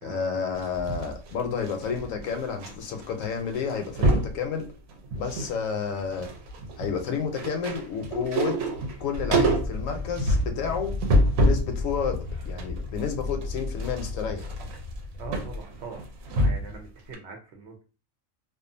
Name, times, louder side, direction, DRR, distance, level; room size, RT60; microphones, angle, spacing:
voice 1, 0.0-4.7 5.1-6.3 6.8-8.6 9.0-10.9 11.4-14.5, left 6 dB, 75° left, 6 dB, 0.9 m, -30 dB
sound 1, 0.6-2.7 3.0-3.3 3.5-4.4 4.9-5.6 5.8-11.7 12.1-16.8 17.1-17.2, right 1 dB, 85° right, 1.0 m, -27 dB
sound 2, 9.1-15.6, left 3 dB, 55° left, 0.6 m, -34 dB
voice 2, 15.2-16.1 16.3-17.8, right 4 dB, 65° right, 3 dB, 0.8 m, -41 dB
2.5 x 2.4 x 2.5 m, 0.35 s
omnidirectional pair, 1.4 m